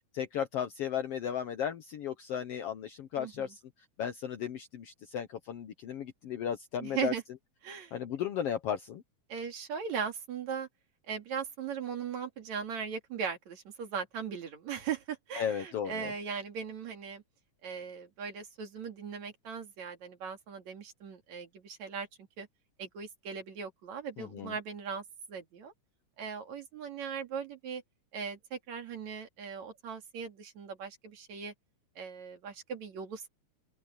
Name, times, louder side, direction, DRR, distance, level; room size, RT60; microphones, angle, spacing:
voice 1, 0.1-3.6 4.0-7.1 7.9-9.0 15.4-16.1 24.2-24.5, left 9 dB, 65° left, 1.8 m, -35 dB
voice 2, 3.2-3.5 6.8-7.2 7.6-7.9 9.3-10.7 11.1-17.2 17.6-22.1 22.4-22.5 22.8-25.0 25.3-25.7 26.2-27.8 28.1-31.5 32.0-33.2, right 6 dB, 70° right, 3.7 m, -39 dB
open air
omnidirectional pair, 3.4 m